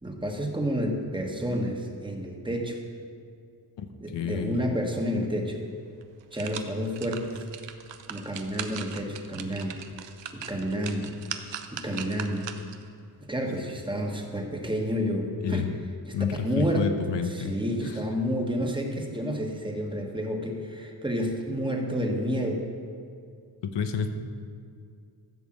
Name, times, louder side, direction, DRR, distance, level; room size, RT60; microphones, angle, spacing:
voice 1, 0.0-2.8 4.0-5.6 6.3-7.4 8.1-9.8 10.3-11.1 11.7-12.5 13.3-15.7 16.1-16.9 17.2-22.7, equal, 10° right, 2 dB, 1.4 m, -30 dB
voice 2, 4.1-4.7 15.4-15.7 16.1-17.5 23.7-24.1, left 6 dB, 90° left, 7 dB, 1.0 m, -29 dB
sound 1, 5.5-5.6 6.0-12.9 13.3-13.4, right 8 dB, 90° right, 0.8 m, -40 dB
14.5 x 5.4 x 7.6 m, 2.3 s
wide cardioid pair, 100°, 42 cm